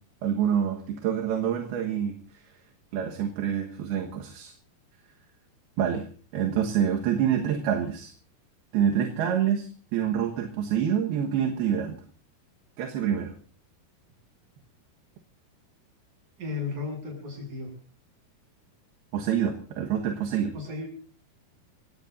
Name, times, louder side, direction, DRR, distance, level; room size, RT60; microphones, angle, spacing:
voice 1, 0.2-2.2 2.9-4.5 5.8-6.1 6.3-8.1 8.7-12.0 12.8-13.3 19.1-20.5, right 9 dB, 70° right, 2 dB, 3.2 m, -27 dB
voice 2, 16.4-17.7 20.5-20.9, left 4 dB, 45° right, 1 dB, 8.3 m, -34 dB
27.5 x 16.5 x 2.7 m, 0.42 s
omnidirectional pair, 4.9 m